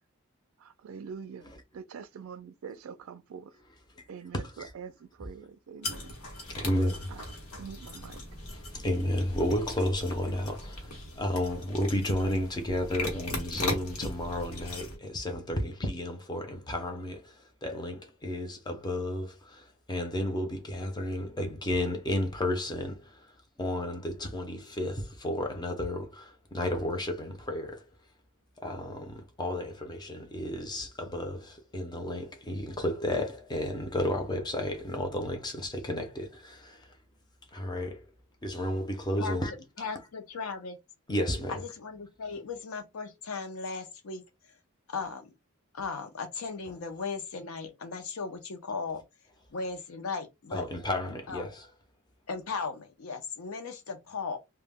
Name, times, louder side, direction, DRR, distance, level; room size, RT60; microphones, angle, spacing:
voice 1, 0.6-1.5 1.7-3.5 4.1-6.1 7.1-7.2 7.6-8.2, right 6 dB, 65° right, 0.3 m, -44 dB
voice 2, 4.3-4.7 6.3-7.4 8.5-27.9 28.6-37.0 37.5-38.1 38.4-39.5 41.1-41.6 46.7-46.8 50.5-51.7, left 1 dB, 20° left, 0.5 m, -32 dB
sound 1, 5.8-15.0, left 2 dB, 85° left, 1.0 m, -39 dB
voice 3, 39.8-40.8 41.5-44.2 44.9-45.3 45.7-49.0 49.5-50.7 51.3-51.4 52.3-54.4, left 4 dB, 70° left, 0.5 m, -37 dB
2.1 x 2.1 x 3.4 m
head